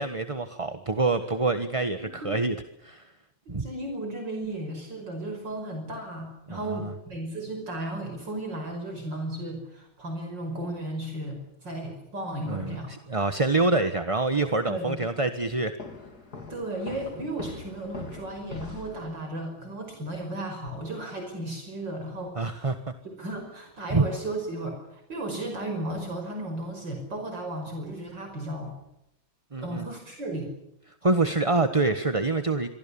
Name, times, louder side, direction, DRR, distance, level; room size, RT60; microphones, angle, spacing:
voice 1, 0.0-2.5 2.8-3.0 3.5-3.7 6.5-6.9 12.5-15.7 22.4-22.8 23.9-24.0 29.5-29.9 31.0-32.7, right 3 dB, 20° right, 9 dB, 1.2 m, -26 dB
voice 2, 2.0-2.3 3.6-12.9 14.7-15.0 16.5-22.8 23.2-28.8 29.6-30.5, right 1 dB, 60° right, 4 dB, 6.1 m, -35 dB
sound 1, 15.8-19.5, left 3 dB, 50° left, 3.8 m, -42 dB
26.5 x 24.0 x 7.2 m, 0.83 s
omnidirectional pair, 2.2 m